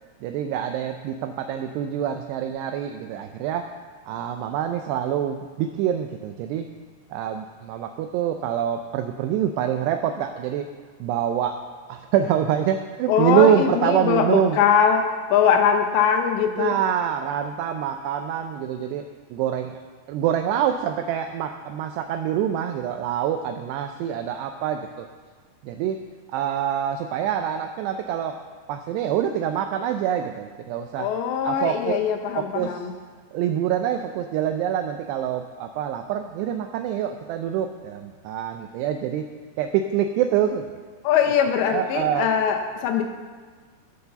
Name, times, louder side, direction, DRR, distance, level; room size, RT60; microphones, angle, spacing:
voice 1, 0.2-3.6 4.1-6.7 7.1-10.7 11.0-11.6 11.9-14.6 16.6-19.0 19.3-19.8 20.1-25.1 25.6-26.0 26.3-28.4 28.7-31.1 31.5-32.0 32.3-32.9 33.3-39.3 39.6-40.7 41.7-42.3, right 9 dB, 85° right, 6 dB, 2.4 m, -25 dB
voice 2, 13.1-15.0 15.3-16.8 31.0-32.9 41.0-43.0, left 7 dB, 80° left, 4 dB, 2.9 m, -21 dB
13.5 x 6.7 x 6.8 m, 1.5 s
omnidirectional pair, 5.4 m